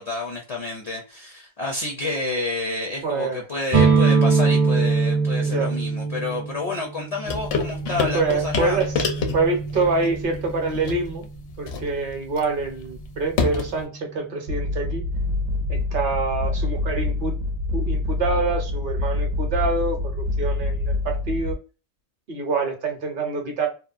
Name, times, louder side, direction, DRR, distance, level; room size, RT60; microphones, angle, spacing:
voice 1, 0.0-8.8, left 2 dB, 50° left, 1 dB, 0.4 m, -29 dB
voice 2, 3.0-3.4 5.4-5.7 8.1-8.9 9.3-11.2 11.6-15.0 15.7-17.4 17.7-21.6 22.3-23.7, right 3 dB, 55° right, 3 dB, 0.8 m, -26 dB
sound 1, 3.7-11.3, right 4 dB, 40° right, 0.5 m, -23 dB
sound 2, 7.3-13.8, left 5 dB, 70° left, 0.8 m, -29 dB
sound 3, 14.5-21.5, left 2 dB, 90° right, 0.9 m, -26 dB
2.9 x 2.0 x 2.4 m, 0.33 s
omnidirectional pair, 1.1 m